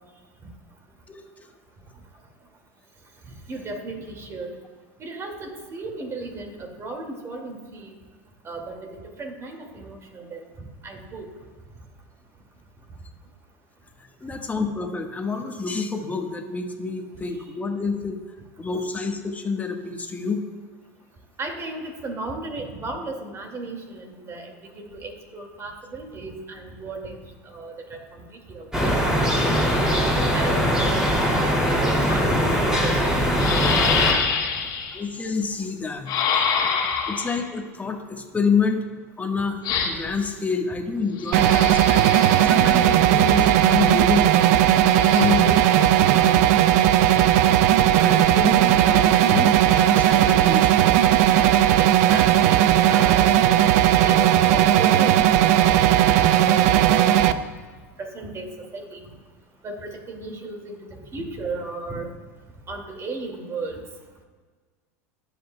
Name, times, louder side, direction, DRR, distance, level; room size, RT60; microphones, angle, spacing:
voice 1, 1.1-1.5 14.2-18.2 18.6-20.4 34.9-36.1 37.1-38.9 39.2-42.0 42.4-44.3 45.1-46.4 48.0-51.0, left 5 dB, 15° left, 3 dB, 1.4 m, -28 dB
voice 2, 3.5-4.5 5.0-7.9 8.4-10.4 10.8-11.3 14.3-14.4 21.4-27.2 27.5-28.0 28.5-28.9 29.3-29.6 29.9-30.0 30.3-31.2 31.8-33.4 34.5-34.6 51.8-53.4 53.9-57.4 58.0-58.5 58.7-59.0 59.6-62.1 62.7-63.8, right 3 dB, 30° right, 3 dB, 2.2 m, -35 dB
sound 1, 28.7-34.1, equal, 5° right, 2.6 m, -21 dB
sound 2, 33.3-35.0 36.1-37.5 39.6-40.2 41.2-42.6 44.8-45.2, left 6 dB, 50° left, 1.7 m, -26 dB
sound 3, 41.3-57.3, right 11 dB, 70° right, 0.5 m, -17 dB
22.0 x 7.9 x 2.2 m, 1.4 s
hypercardioid pair, 95°, 9 cm